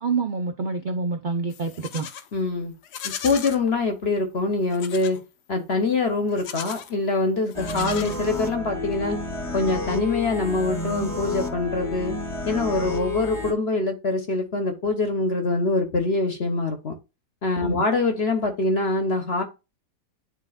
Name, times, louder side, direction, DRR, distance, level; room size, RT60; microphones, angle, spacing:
voice 1, 0.0-2.1 17.6-17.8, right 4 dB, 60° right, 0.5 m, -27 dB
Livestock farm animals working animals, 1.5-2.3 2.8-3.6 4.7-5.2 6.3-6.9 7.5-8.6, left 9 dB, 75° left, 1.3 m, -36 dB
voice 2, 2.3-2.7 3.0-5.2 5.5-9.2 9.5-12.1 12.5-16.9 17.4-19.4, left 3 dB, 45° left, 1.1 m, -24 dB
sound 1, 7.5-13.5, left 2 dB, 20° left, 1.1 m, -30 dB
10.5 x 3.8 x 2.4 m
omnidirectional pair, 1.8 m